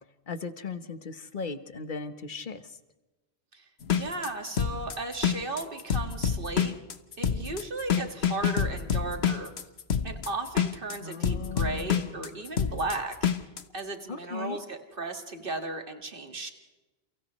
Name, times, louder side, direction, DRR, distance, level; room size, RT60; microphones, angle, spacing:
voice 1, 0.3-2.8 11.0-12.3 14.1-14.6, left 4 dB, 55° left, 10 dB, 1.3 m, -38 dB
sound 1, 3.8-13.6, left 8 dB, 90° left, 1.4 m, -27 dB
voice 2, 3.9-6.7 7.2-9.5 10.0-13.1 13.7-16.5, right 3 dB, 60° right, 5 dB, 2.2 m, -35 dB
29.5 x 29.0 x 3.2 m, 1.1 s
omnidirectional pair, 1.0 m